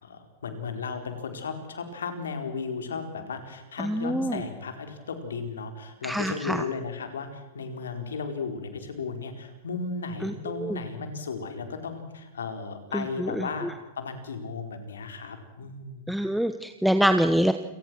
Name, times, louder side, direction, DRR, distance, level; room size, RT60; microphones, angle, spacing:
voice 1, 0.0-13.7 14.0-16.0, left 4 dB, 85° left, 7 dB, 4.3 m, -35 dB
voice 2, 3.8-4.4 6.0-6.6 10.2-10.8 12.9-13.7 16.1-17.5, equal, ahead, 8 dB, 1.2 m, -26 dB
28.5 x 19.0 x 6.2 m, 1.0 s
hypercardioid pair, 115°, 0 cm